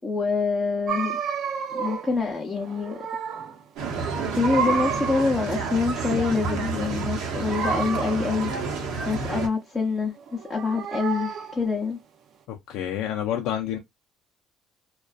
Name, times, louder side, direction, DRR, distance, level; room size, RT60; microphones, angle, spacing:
voice 1, 0.0-1.2 1.7-3.0 3.9-8.5 9.0-12.0, left 4 dB, 15° left, 0.6 m, -26 dB
sound 1, 0.9-2.2 2.5-3.6 3.9-5.5 7.4-8.5 10.2-11.7, right 6 dB, 55° right, 0.4 m, -31 dB
sound 2, 3.8-9.5, right 4 dB, 75° right, 0.8 m, -29 dB
voice 2, 12.5-13.8, left 10 dB, 80° left, 0.4 m, -28 dB
2.5 x 2.2 x 2.3 m
cardioid pair, 125°, 0 cm